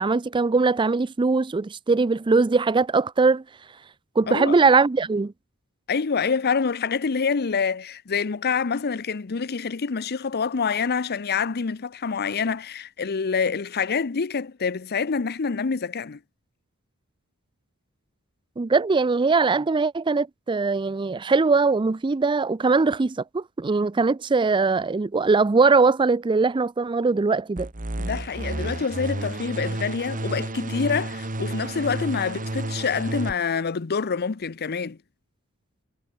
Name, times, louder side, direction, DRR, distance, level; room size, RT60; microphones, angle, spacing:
voice 1, 0.0-3.4 4.2-5.3 18.6-27.7, right 4 dB, 20° right, 0.4 m, -21 dB
voice 2, 5.9-16.2 28.0-35.0, left 5 dB, 45° left, 0.7 m, -26 dB
sound 1, 27.6-33.3, right 1 dB, 40° right, 1.9 m, -31 dB
head